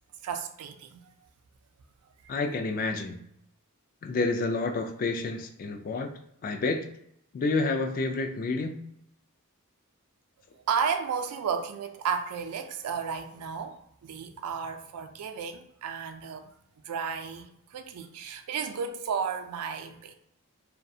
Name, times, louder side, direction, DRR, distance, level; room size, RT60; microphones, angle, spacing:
voice 1, 0.2-1.1 10.5-16.5 16.8-20.1, right 6 dB, 85° right, 0.3 m, -33 dB
voice 2, 2.3-3.2 4.0-6.1 6.4-6.9 7.3-8.8, left 3 dB, 40° left, 0.3 m, -29 dB
2.3 x 2.1 x 2.6 m
head